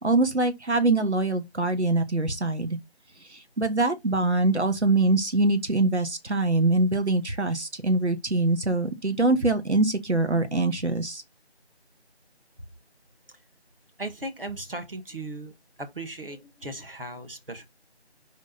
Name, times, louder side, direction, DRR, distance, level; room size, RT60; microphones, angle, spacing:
voice 1, 0.0-2.8 3.2-11.2, right 2 dB, 90° right, 1.4 m, -24 dB
voice 2, 14.0-15.5 15.8-17.7, right 2 dB, 55° right, 1.8 m, -37 dB
5.4 x 5.1 x 4.0 m
figure-of-eight pair, 170°, 33 cm